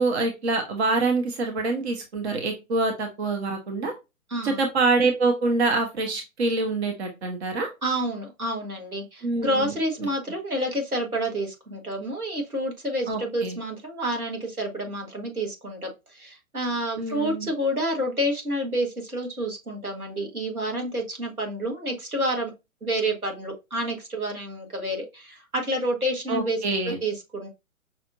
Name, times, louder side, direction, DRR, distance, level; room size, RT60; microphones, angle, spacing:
voice 1, 0.0-3.9 4.4-7.7 9.2-9.7 10.0-10.1 13.1-13.6 17.0-17.5 26.3-27.0, right 3 dB, 45° right, 4 dB, 1.1 m, -25 dB
voice 2, 7.8-22.5 22.8-26.6 26.9-27.5, right 1 dB, 85° right, 1 dB, 1.7 m, -29 dB
5.8 x 2.7 x 2.6 m, 0.24 s
figure-of-eight pair, 125°, 43 cm